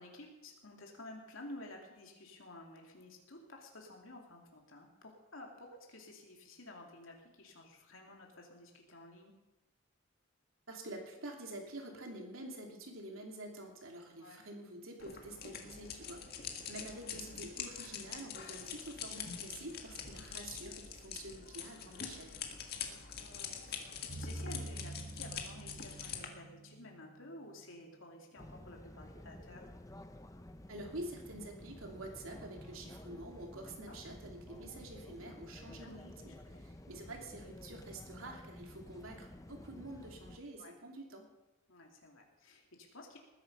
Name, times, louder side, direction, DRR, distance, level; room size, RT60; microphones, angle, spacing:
voice 1, 0.0-9.4 14.2-14.4 16.5-16.8 20.1-20.5 22.7-29.7 33.9-34.0 35.6-36.6 40.6-40.7 41.7-43.2, left 2 dB, 80° left, 0 dB, 2.6 m, -53 dB
voice 2, 10.7-22.4 30.7-36.3 36.6-41.3, right 1 dB, 85° right, 2 dB, 2.9 m, -48 dB
sound 1, 15.0-26.3, left 7 dB, 50° left, 1.9 m, -45 dB
sound 2, 24.1-27.8, right 1 dB, 50° right, 4.1 m, -46 dB
sound 3, 28.4-40.4, left 1 dB, 15° left, 0.8 m, -52 dB
20.0 x 10.5 x 5.5 m, 1.1 s
head